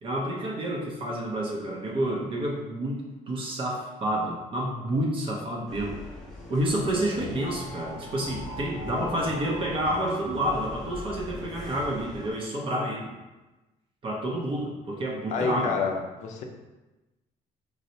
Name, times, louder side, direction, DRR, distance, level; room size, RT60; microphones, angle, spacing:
voice 1, 0.0-6.0 6.5-13.1 14.0-15.8, right 1 dB, 35° right, -2 dB, 0.5 m, -29 dB
sound 1, 5.7-12.3, left 1 dB, 5° left, 0.6 m, -39 dB
voice 2, 15.3-16.4, left 4 dB, 55° left, 2 dB, 0.5 m, -28 dB
4.2 x 2.0 x 2.7 m, 1.1 s
cardioid pair, 135°, 15 cm